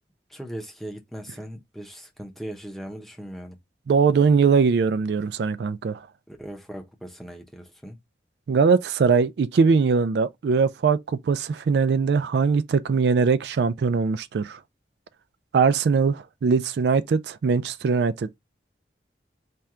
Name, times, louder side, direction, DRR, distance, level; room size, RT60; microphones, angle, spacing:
voice 1, 0.3-3.6 6.3-8.0, equal, ahead, 0.7 m, -39 dB
voice 2, 3.9-6.1 8.5-14.6 15.5-18.4, right 5 dB, 70° right, 0.3 m, -21 dB
4.3 x 2.3 x 3.6 m
head